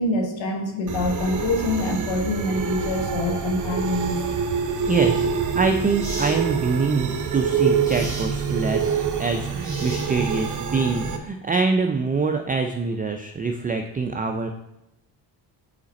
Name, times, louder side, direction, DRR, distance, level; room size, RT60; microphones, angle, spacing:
voice 1, 0.0-4.2, left 2 dB, 70° left, 2 dB, 1.3 m, -25 dB
sound 1, 0.9-11.2, right 6 dB, 40° right, 0.8 m, -26 dB
voice 2, 4.9-14.5, right 4 dB, 20° right, 5 dB, 0.4 m, -25 dB
sound 2, 5.2-5.3 6.0-6.4 7.8-8.3 9.6-10.4, equal, 5° left, 2.4 m, -36 dB
5.0 x 5.0 x 4.1 m, 0.87 s
cardioid pair, 80°, 45 cm